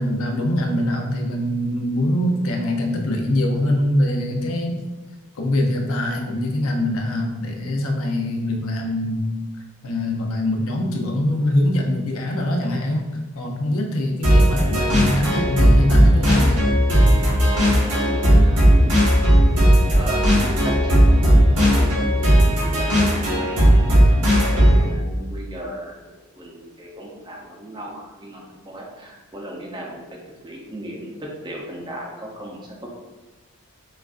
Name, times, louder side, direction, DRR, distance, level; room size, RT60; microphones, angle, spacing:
voice 1, 0.0-4.8 5.4-9.2 9.8-13.1 13.3-16.7, left 1 dB, 70° left, 1 dB, 0.6 m, -23 dB
sound 1, 14.2-24.9, equal, 80° right, 1.4 m, -16 dB
voice 2, 17.7-19.1 19.9-24.1 24.4-26.0 26.4-30.0 30.4-32.9, right 1 dB, 20° right, -1 dB, 0.6 m, -35 dB
6.0 x 2.5 x 2.5 m, 1.2 s
head